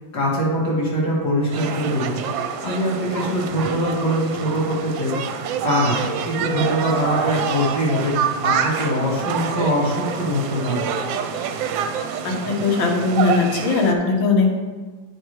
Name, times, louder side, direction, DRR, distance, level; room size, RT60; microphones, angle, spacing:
voice 1, 0.1-2.2 2.6-5.2 5.6-10.8, equal, 60° left, -5 dB, 2.7 m, -22 dB
sound 1, 1.5-13.9, right 7 dB, 80° right, 1.3 m, -27 dB
voice 2, 12.2-14.5, left 4 dB, 80° left, 1 dB, 1.9 m, -19 dB
8.7 x 4.7 x 4.7 m, 1.4 s
omnidirectional pair, 2.1 m